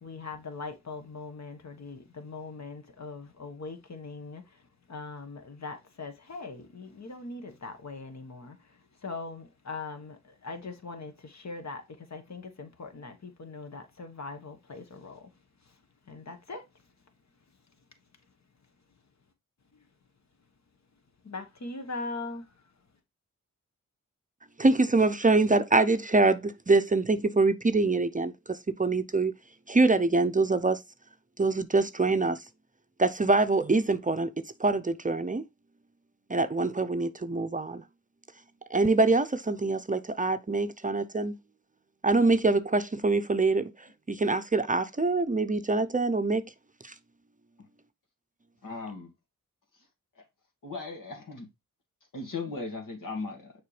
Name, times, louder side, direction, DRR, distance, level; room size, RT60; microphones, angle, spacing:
voice 1, 0.0-4.6 4.9-15.3 16.1-16.6 21.2-22.5, left 3 dB, 55° left, 1.3 m, -41 dB
voice 2, 24.6-29.3 29.7-30.8 31.4-32.4 33.0-34.3 34.6-35.4 36.3-37.8 38.7-41.3 42.0-43.7 44.1-46.4 46.8-46.9, right 3 dB, 25° right, 0.6 m, -24 dB
voice 3, 48.6-49.1 50.2-50.3 50.6-51.5 52.1-53.6, left 3 dB, 75° left, 2.0 m, -37 dB
6.6 x 4.5 x 3.2 m
cardioid pair, 45°, 33 cm